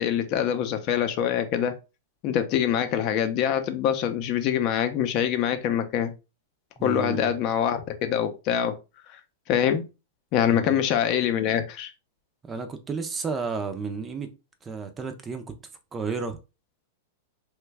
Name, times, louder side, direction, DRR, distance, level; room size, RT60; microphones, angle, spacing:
voice 1, 0.0-1.8 2.2-6.1 6.8-8.8 9.5-9.8 10.3-11.9, left 9 dB, 45° left, 0.6 m, -24 dB
voice 2, 6.8-7.3 10.5-10.8 12.4-14.3 14.6-15.5 15.9-16.4, right 5 dB, 20° right, 0.5 m, -32 dB
3.0 x 2.3 x 3.3 m
hypercardioid pair, 130°, 0 cm